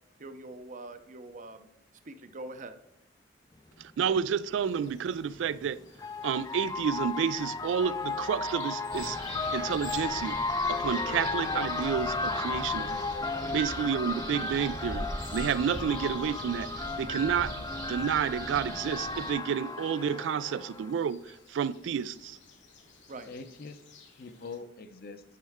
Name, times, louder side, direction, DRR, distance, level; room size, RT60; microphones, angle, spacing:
voice 1, 0.2-1.7 2.1-2.8 11.5-11.6 23.1-23.3, right 2 dB, 45° right, 0.6 m, -43 dB
sound 1, 3.8-3.9 5.3-20.9, left 3 dB, 20° left, 0.3 m, -34 dB
voice 2, 3.8-5.8 6.2-9.2 9.5-10.4 10.7-13.0 13.5-22.4, right 7 dB, 80° right, 0.3 m, -30 dB
Bird vocalization bird call bird song, 4.6-24.6, left 5 dB, 80° left, 1.3 m, -53 dB
sound 2, 8.9-19.3, right 1 dB, 20° right, 0.9 m, -41 dB
voice 3, 23.3-23.8 24.2-25.2, left 4 dB, 55° left, 0.6 m, -44 dB
9.3 x 5.4 x 3.5 m
head